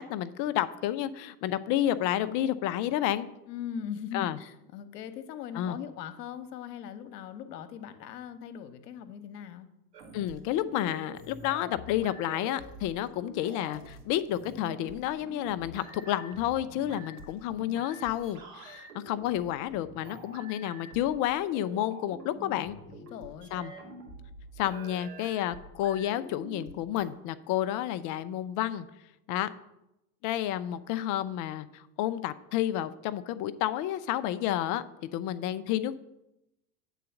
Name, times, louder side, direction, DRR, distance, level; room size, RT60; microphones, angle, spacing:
voice 1, 0.0-3.3 4.1-4.4 5.5-5.8 10.1-22.8 23.5-23.7 24.6-28.9 29.3-29.5 30.2-34.8 35.1-36.0, left 12 dB, 40° left, 13 dB, 0.5 m, -30 dB
voice 2, 3.5-9.7 22.9-23.5, left 8 dB, 75° left, 10 dB, 1.0 m, -40 dB
sound 1, 9.9-27.1, right 1 dB, 80° right, 2.4 m, -47 dB
8.3 x 3.9 x 7.0 m, 0.89 s
hypercardioid pair, 100°, 48 cm